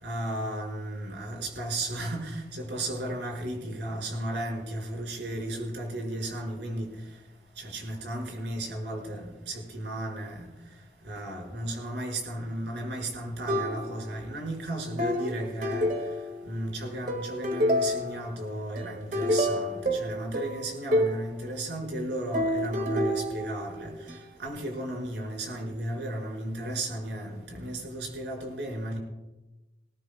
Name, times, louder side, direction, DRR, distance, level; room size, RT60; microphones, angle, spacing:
voice 1, 0.0-6.9 7.6-10.5 11.0-15.9 16.5-23.9 24.4-29.0, right 1 dB, 85° right, -1 dB, 5.5 m, -34 dB
sound 1, 13.5-14.3 15.0-16.6 17.1-18.3 18.8-21.3 22.3-24.1, equal, 45° right, 1.9 m, -28 dB
20.5 x 18.0 x 2.3 m, 1.1 s
head